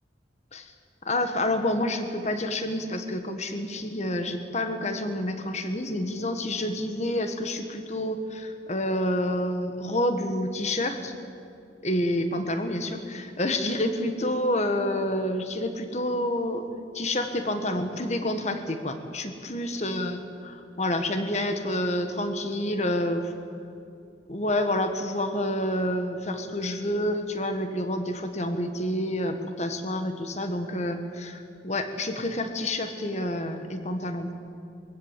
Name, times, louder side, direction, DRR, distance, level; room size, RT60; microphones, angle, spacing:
voice 1, 1.0-11.1 11.8-16.6 16.9-23.3 24.3-34.3, left 1 dB, 40° left, 7 dB, 1.7 m, -28 dB
22.5 x 15.5 x 8.5 m, 2.5 s
head